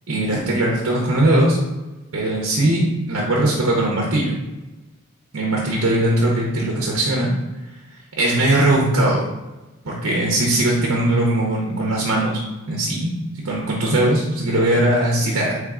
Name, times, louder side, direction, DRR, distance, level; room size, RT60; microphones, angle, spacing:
voice 1, 0.1-1.6 2.1-4.3 5.3-7.3 8.2-9.2 9.8-12.4 12.7-15.6, right 1 dB, 60° right, -2 dB, 0.8 m, -20 dB
4.4 x 3.3 x 3.7 m, 1.1 s
head